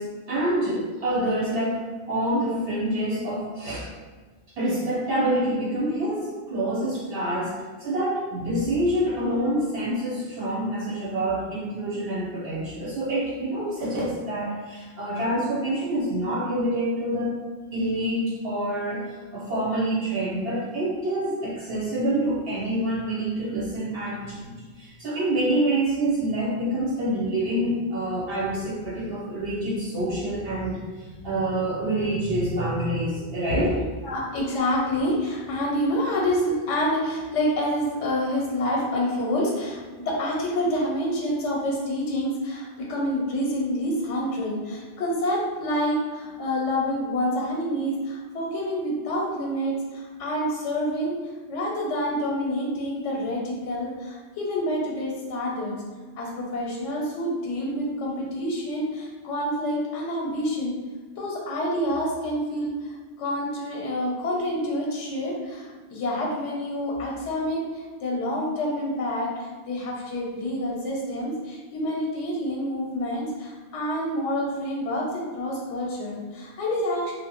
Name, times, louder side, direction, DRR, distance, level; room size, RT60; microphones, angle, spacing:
voice 1, 0.0-3.9 4.6-17.4 17.7-33.8, right 1 dB, 60° right, -6 dB, 0.7 m, -27 dB
voice 2, 34.0-55.7 56.2-60.7 61.2-77.1, equal, 90° left, -2 dB, 0.9 m, -27 dB
2.7 x 2.0 x 2.9 m, 1.4 s
omnidirectional pair, 1.2 m